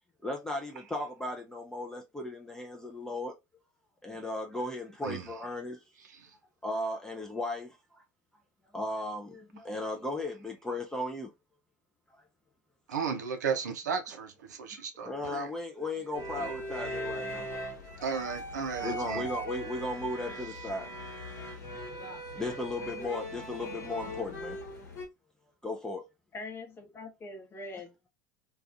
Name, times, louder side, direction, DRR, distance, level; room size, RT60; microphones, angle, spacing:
voice 1, 0.2-3.3 4.0-5.8 6.6-8.0 8.7-11.3 15.0-17.5 18.8-21.0 21.4-21.9 22.4-24.6 25.6-26.1, left 2 dB, 5° left, 0.4 m, -36 dB
voice 2, 12.9-15.5 18.0-19.3, right 6 dB, 70° right, 0.5 m, -34 dB
sound 1, 16.1-25.0, right 1 dB, 65° left, 1.0 m, -39 dB
voice 3, 26.3-28.1, left 2 dB, 25° left, 0.9 m, -43 dB
2.3 x 2.3 x 2.4 m
figure-of-eight pair, 75°, 10 cm